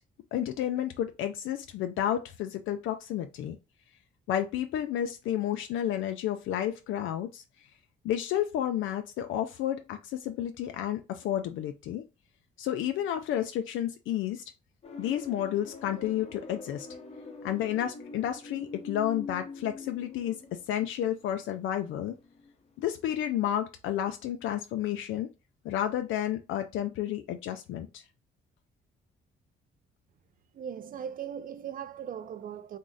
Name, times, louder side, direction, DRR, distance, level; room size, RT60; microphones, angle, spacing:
voice 1, 0.3-3.6 4.3-7.4 8.0-12.0 12.6-14.4 15.0-16.9 17.4-20.4 20.7-22.1 22.8-25.3 25.6-28.0, left 11 dB, 80° left, 0.4 m, -31 dB
sound 1, 14.8-22.7 22.9-23.3, left 3 dB, 30° left, 0.7 m, -44 dB
voice 2, 30.5-32.8, right 8 dB, 45° right, 0.4 m, -39 dB
3.6 x 2.0 x 3.8 m
cardioid pair, 90°, 20 cm